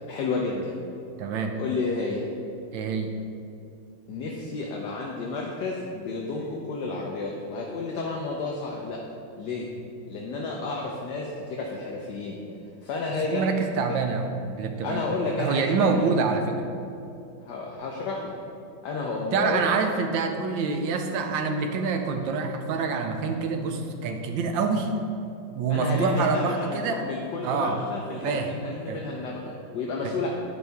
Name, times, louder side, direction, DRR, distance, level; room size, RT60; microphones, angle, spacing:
voice 1, 0.1-0.8 1.6-2.2 4.1-9.0 9.4-9.7 10.1-12.4 12.8-13.6 14.8-16.1 17.4-18.3 18.8-19.6 25.7-30.3, left 3 dB, 65° left, -2 dB, 1.2 m, -31 dB
voice 2, 1.2-1.5 2.7-3.2 13.2-15.0 15.4-16.6 19.3-25.0 25.5-27.0 27.4-27.8 28.2-28.5 28.9-29.0 30.0-30.1, right 4 dB, 80° right, 5 dB, 1.4 m, -26 dB
11.0 x 5.3 x 3.5 m, 2.7 s
omnidirectional pair, 2.1 m